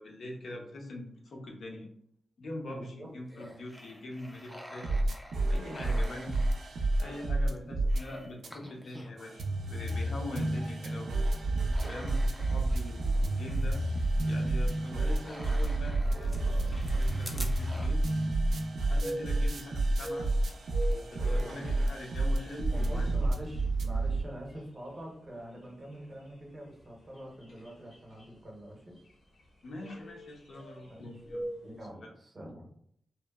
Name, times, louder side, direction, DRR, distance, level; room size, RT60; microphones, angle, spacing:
voice 1, 0.0-1.9 2.4-5.1 5.5-6.4 7.0-11.3 11.8-13.8 14.3-18.0 18.8-20.3 20.9-23.1 29.6-31.5, left 1 dB, 60° left, 1 dB, 0.5 m, -43 dB
voice 2, 2.7-3.6 7.6-7.9 10.3-11.0 21.1-21.6 22.7-29.0 30.8-31.2 31.6-32.7, right 1 dB, 30° right, -1 dB, 0.6 m, -46 dB
sound 1, 3.2-9.3 9.7-17.9, equal, 5° left, 0.3 m, -49 dB
sound 2, 4.8-8.0 8.4-8.5 9.2-24.2, right 2 dB, 75° right, 0.4 m, -30 dB
sound 3, 19.0-31.9, right 1 dB, 80° left, 0.8 m, -45 dB
2.8 x 2.0 x 2.2 m, 0.66 s
wide cardioid pair, 155°, 0 cm